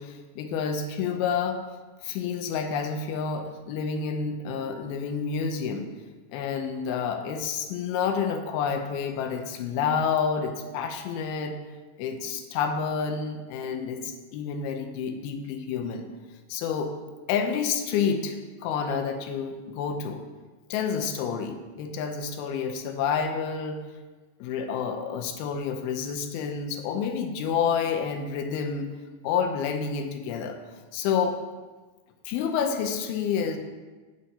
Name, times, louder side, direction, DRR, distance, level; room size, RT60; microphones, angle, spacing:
voice 1, 0.0-1.6 2.0-5.9 6.3-11.6 12.0-16.0 16.5-16.9 17.3-20.2 20.7-23.8 24.4-28.9 29.2-30.6 30.9-31.4 32.3-33.6, left 6 dB, 90° left, 5 dB, 2.6 m, -29 dB
8.8 x 7.9 x 2.8 m, 1.3 s
omnidirectional pair, 4.3 m